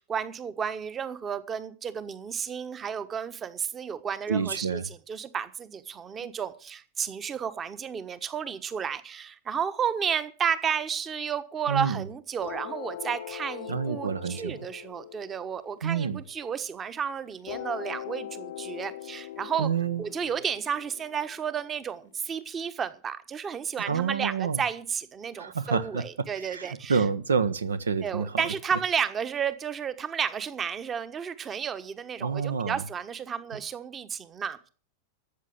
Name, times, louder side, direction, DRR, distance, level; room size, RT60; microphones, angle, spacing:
voice 1, 0.0-19.7 20.0-27.0 28.0-34.7, right 7 dB, 25° right, 1.2 m, -32 dB
voice 2, 4.3-4.9 11.7-12.0 13.7-14.6 15.8-16.2 19.6-20.0 23.9-24.6 25.4-26.1 26.4-28.5 32.2-32.8, right 6 dB, 70° right, 0.9 m, -28 dB
sound 1, 12.4-16.8 17.5-22.4, left 12 dB, 55° left, 0.8 m, -42 dB
13.5 x 8.4 x 8.0 m
figure-of-eight pair, 90°, 0 cm